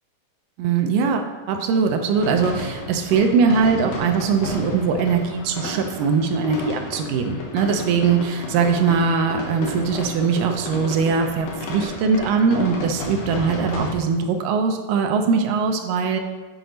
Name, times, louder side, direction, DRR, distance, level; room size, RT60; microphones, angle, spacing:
voice 1, 0.6-16.2, right 5 dB, 80° right, 5 dB, 2.2 m, -21 dB
sound 1, 2.1-13.9, left 2 dB, 90° left, 2.9 m, -33 dB
7.9 x 4.4 x 5.1 m, 1.3 s
omnidirectional pair, 3.9 m